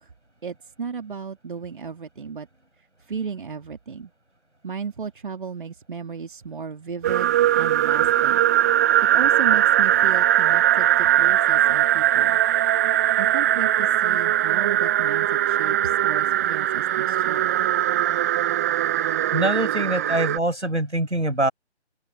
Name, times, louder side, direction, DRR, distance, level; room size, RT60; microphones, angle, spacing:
voice 1, 0.4-2.5 3.1-4.1 4.6-8.4 9.1-12.4 13.2-17.5, right 5 dB, 45° right, 2.5 m, -34 dB
sound 1, 7.0-20.4, right 12 dB, 15° right, 1.3 m, -20 dB
voice 2, 19.3-21.5, right 1 dB, 90° right, 6.7 m, -24 dB
open air
figure-of-eight pair, 155°, 34 cm